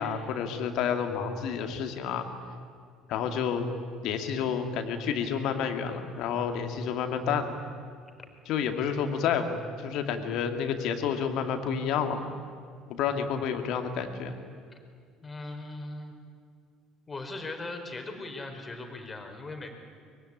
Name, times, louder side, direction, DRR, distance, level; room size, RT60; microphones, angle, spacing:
voice 1, 0.0-2.3 3.1-3.7 4.0-7.6 8.5-12.3 12.9-14.3, left 7 dB, 60° left, 6 dB, 2.4 m, -30 dB
voice 2, 15.2-16.1 17.1-19.7, left 2 dB, 25° left, 5 dB, 4.5 m, -39 dB
23.5 x 21.5 x 9.9 m, 2.1 s
figure-of-eight pair, 60°, 0 cm